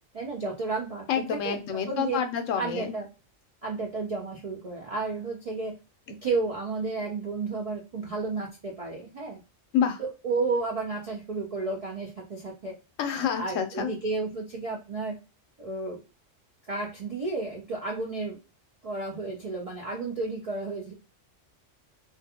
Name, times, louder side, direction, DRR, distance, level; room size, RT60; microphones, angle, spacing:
voice 1, 0.1-1.6 1.9-2.2 2.6-3.1 3.6-5.8 6.1-9.4 10.0-12.8 13.2-15.2 15.6-16.0 16.7-18.4 18.8-20.9, right 3 dB, 60° right, -2 dB, 0.3 m, -32 dB
voice 2, 1.1-2.9 9.7-10.0 13.0-13.9, left 8 dB, 85° left, 7 dB, 1.0 m, -28 dB
2.4 x 2.2 x 2.8 m, 0.31 s
omnidirectional pair, 1.3 m